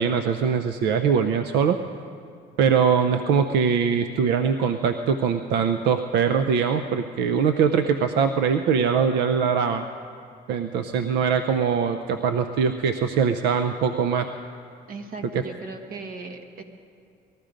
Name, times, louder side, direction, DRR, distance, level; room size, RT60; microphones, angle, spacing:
voice 1, 0.0-1.8 2.6-9.8 10.5-14.3 15.3-15.4, right 6 dB, 85° right, 8 dB, 0.6 m, -22 dB
voice 2, 14.9-16.6, right 3 dB, 60° right, 6 dB, 1.5 m, -37 dB
20.0 x 13.5 x 5.1 m, 2.3 s
cardioid pair, 110°, 17 cm